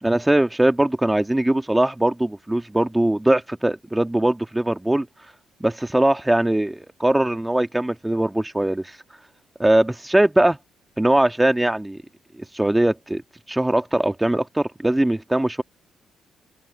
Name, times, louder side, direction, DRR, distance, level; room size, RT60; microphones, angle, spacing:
voice 1, 0.0-5.1 5.6-9.0 9.6-10.6 11.0-12.0 12.5-13.2 13.5-15.6, right 1 dB, 10° right, 1.7 m, -20 dB
cardioid pair, 90°, 0 cm